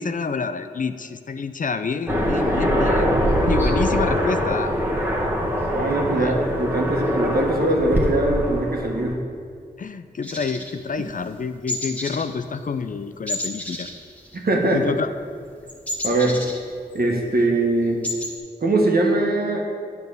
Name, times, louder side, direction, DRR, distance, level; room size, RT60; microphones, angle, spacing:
voice 1, 0.0-3.1 3.4-4.7 6.2-6.4 9.8-13.9 14.7-15.1, left 5 dB, 45° left, 10 dB, 0.5 m, -28 dB
Aircraft, 2.1-9.1, equal, 10° right, 1.6 m, -23 dB
voice 2, 2.9-3.2 5.7-9.2 14.3-14.8 16.0-16.4 16.9-18.0 18.6-19.7, right 2 dB, 60° right, 0 dB, 1.4 m, -21 dB
sound 1, 10.2-11.4 11.7-12.3 12.5-12.8 13.3-14.8 15.1-17.2 17.5-17.6 17.8-18.3, left 1 dB, 5° left, 1.5 m, -31 dB
8.7 x 4.1 x 6.9 m, 2.2 s
cardioid pair, 40°, 18 cm